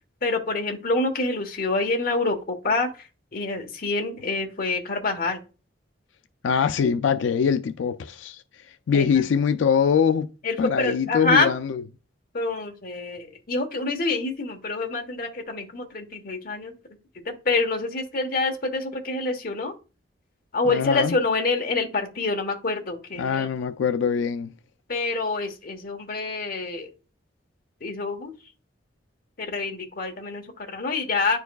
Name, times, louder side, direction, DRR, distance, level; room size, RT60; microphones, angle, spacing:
voice 1, 0.2-5.4 8.9-9.1 10.4-11.5 12.3-16.7 17.2-19.7 20.5-23.5 24.9-26.9 27.8-28.3 29.4-31.4, left 3 dB, 50° left, 1.2 m, -26 dB
voice 2, 6.4-8.4 8.9-10.3 10.6-11.8 20.7-21.1 23.2-24.5, left 6 dB, 75° left, 0.4 m, -23 dB
10.0 x 4.6 x 2.3 m
head